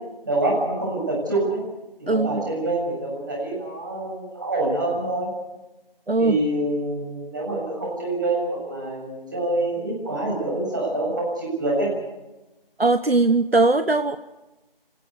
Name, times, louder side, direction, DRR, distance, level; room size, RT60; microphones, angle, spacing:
voice 1, 0.2-1.6 2.0-5.3 6.2-11.9, right 2 dB, 20° right, -3 dB, 7.2 m, -26 dB
voice 2, 2.1-2.5 6.1-6.4 12.8-14.2, right 3 dB, 85° right, 10 dB, 1.1 m, -20 dB
26.0 x 16.5 x 8.3 m, 1.1 s
figure-of-eight pair, 170°, 29 cm